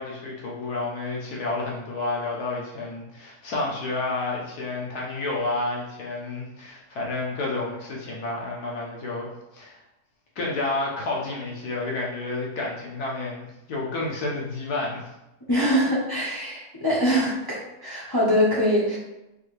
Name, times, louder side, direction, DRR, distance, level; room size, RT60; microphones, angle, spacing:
voice 1, 0.0-9.8 10.4-15.0, left 2 dB, 70° left, -3 dB, 1.4 m, -30 dB
voice 2, 15.5-19.0, equal, 20° left, -7 dB, 0.6 m, -23 dB
4.6 x 2.7 x 3.1 m, 0.94 s
omnidirectional pair, 1.7 m